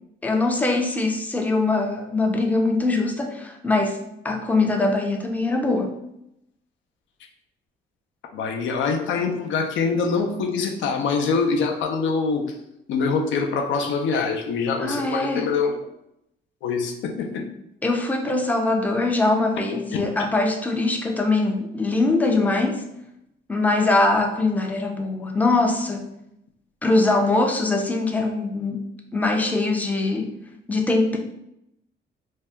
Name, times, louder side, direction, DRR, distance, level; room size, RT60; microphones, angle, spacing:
voice 1, 0.2-5.9 14.8-15.4 17.8-22.9 23.5-26.1 26.8-30.3 30.7-31.2, left 2 dB, 10° left, 2 dB, 0.4 m, -22 dB
voice 2, 8.3-12.5 12.9-15.7 16.6-17.5 19.9-20.1, left 5 dB, 75° left, 3 dB, 0.5 m, -24 dB
2.7 x 2.2 x 3.3 m, 0.81 s
cardioid pair, 90°, 20 cm